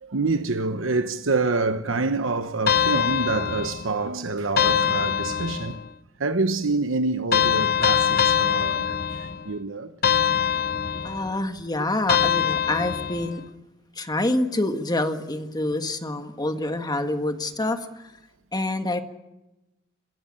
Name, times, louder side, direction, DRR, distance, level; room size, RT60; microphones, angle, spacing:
voice 1, 0.0-5.8 6.2-9.9, right 3 dB, 80° right, 1.1 m, -26 dB
sound 1, 2.7-4.0 4.6-5.9 7.3-9.5 10.0-11.3 12.1-13.4, left 8 dB, 50° left, 1.0 m, -23 dB
voice 2, 11.0-13.4 13.9-17.9 18.5-19.0, left 2 dB, 20° left, 1.6 m, -26 dB
26.0 x 16.0 x 8.8 m
head